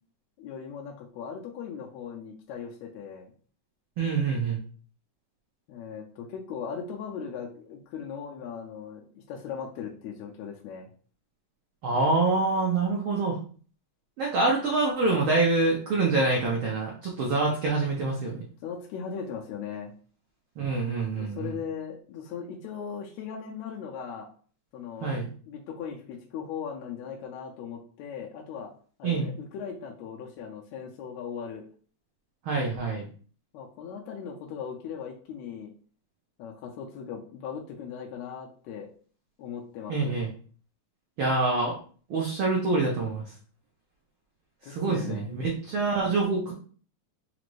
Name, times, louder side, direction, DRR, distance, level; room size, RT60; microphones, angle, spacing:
voice 1, 0.4-3.3 5.7-10.9 18.6-19.9 21.1-24.3 24.7-25.2 25.5-28.7 29.0-31.6 33.5-35.7 36.4-38.9 39.4-40.2 44.6-45.3, left 7 dB, 80° left, -1 dB, 1.8 m, -38 dB
voice 2, 4.0-4.6 11.8-13.4 14.2-18.4 20.6-21.5 25.0-25.3 29.0-29.3 32.4-33.1 39.9-40.3 41.2-41.7 42.1-43.2 44.6-46.5, right 3 dB, 85° right, -2 dB, 1.1 m, -26 dB
5.0 x 2.6 x 3.0 m, 0.43 s
omnidirectional pair, 3.4 m